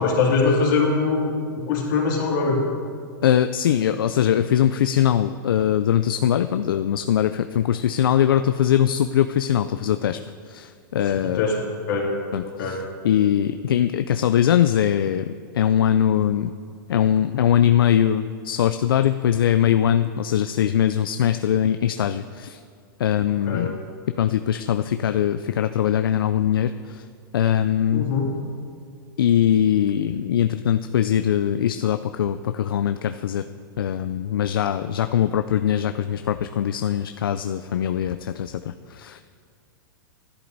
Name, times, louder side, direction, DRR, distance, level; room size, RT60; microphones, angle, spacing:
voice 1, 0.0-1.3 1.7-2.6 11.2-11.6 11.9-12.1 12.6-12.8 23.4-23.7 27.9-28.3, left 4 dB, 65° left, -2 dB, 3.0 m, -22 dB
voice 2, 3.2-10.2 10.5-11.4 12.3-16.5 16.9-22.6 23.0-23.8 24.2-27.0 27.3-28.1 29.2-33.5 33.8-39.2, left 10 dB, 85° left, 9 dB, 0.4 m, -21 dB
13.0 x 11.0 x 4.1 m, 2.2 s
hypercardioid pair, 125°, 11 cm